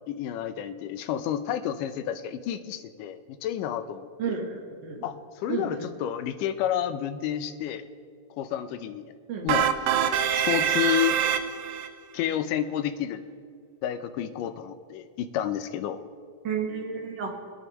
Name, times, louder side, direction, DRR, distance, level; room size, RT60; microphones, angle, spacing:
voice 1, 0.1-4.4 5.0-7.8 8.4-9.0 9.4-9.7 9.9-10.1 10.3-11.2 12.1-13.2 13.8-16.0, left 10 dB, 85° left, 10 dB, 2.3 m, -30 dB
voice 2, 4.2-5.0 5.5-5.9 9.3-9.5 16.4-17.3, right 6 dB, 55° right, 1 dB, 1.3 m, -32 dB
sound 1, 9.5-11.9, right 9 dB, 75° right, 1.7 m, -24 dB
24.5 x 9.7 x 3.0 m, 2.2 s
omnidirectional pair, 3.7 m